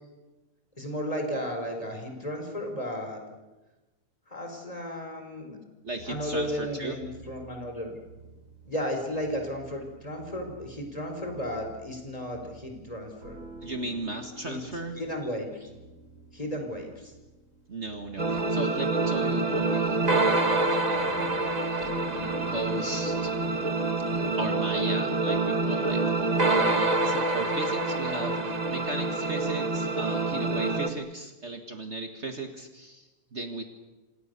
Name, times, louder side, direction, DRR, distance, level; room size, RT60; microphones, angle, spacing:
voice 1, 0.8-3.2 4.3-5.6 6.1-7.9 8.7-13.3 14.4-14.6 15.0-15.7 16.3-17.1, equal, 20° left, 3 dB, 4.5 m, -34 dB
voice 2, 5.8-7.0 13.6-15.0 17.7-21.8 22.1-23.4 24.0-33.6, right 2 dB, 40° right, 5 dB, 2.0 m, -36 dB
sound 1, 5.9-24.3, right 2 dB, 55° right, 7.7 m, -50 dB
sound 2, 18.2-30.9, right 2 dB, 25° right, 1.4 m, -26 dB
27.5 x 27.0 x 6.8 m, 1.1 s
omnidirectional pair, 1.8 m